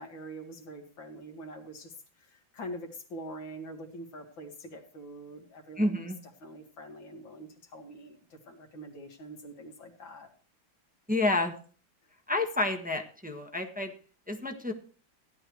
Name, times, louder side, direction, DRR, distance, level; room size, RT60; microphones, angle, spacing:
voice 1, 0.0-10.3, right 1 dB, 75° left, 4 dB, 2.6 m, -45 dB
voice 2, 5.8-6.2 11.1-11.5 12.3-13.9 14.3-14.7, left 2 dB, 5° right, 2 dB, 1.2 m, -29 dB
16.0 x 11.0 x 3.1 m, 0.41 s
omnidirectional pair, 2.1 m